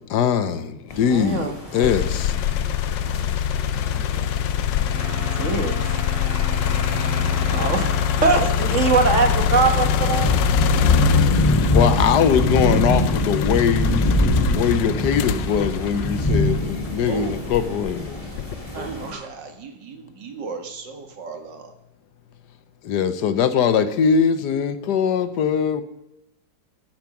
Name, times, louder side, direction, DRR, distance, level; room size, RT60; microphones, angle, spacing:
voice 1, 0.0-2.3 11.7-14.0 14.5-18.2 22.8-25.8, left 7 dB, 75° left, 1.3 m, -21 dB
sound 1, 0.9-19.1, left 1 dB, 20° left, 2.6 m, -25 dB
voice 2, 1.1-1.9 5.4-6.0 7.4-7.9 8.2-10.3 18.7-19.2, right 4 dB, 45° right, 1.8 m, -22 dB
sound 2, 1.8-16.9 17.5-18.7, left 9 dB, 90° left, 1.3 m, -24 dB
Wind instrument woodwind instrument, 4.8-8.8, equal, 10° right, 1.2 m, -36 dB
voice 3, 17.1-17.5 18.8-21.7, right 4 dB, 85° right, 2.2 m, -35 dB
12.0 x 9.5 x 6.0 m
omnidirectional pair, 1.9 m